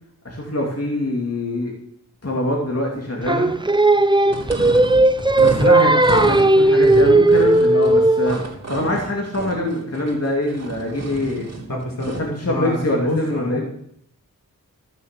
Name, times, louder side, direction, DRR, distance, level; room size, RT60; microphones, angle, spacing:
voice 1, 0.2-1.7 2.2-3.5 5.4-8.4 8.7-11.5 12.1-13.6, left 1 dB, 45° left, -1 dB, 2.7 m, -24 dB
Singing, 3.3-8.5, right 2 dB, 15° right, 0.6 m, -15 dB
sound 1, 4.2-12.3, right 2 dB, 45° right, 3.1 m, -32 dB
voice 2, 11.7-13.6, left 1 dB, 70° left, -1 dB, 3.9 m, -28 dB
15.0 x 6.8 x 6.7 m, 0.69 s
cardioid pair, 45°, 35 cm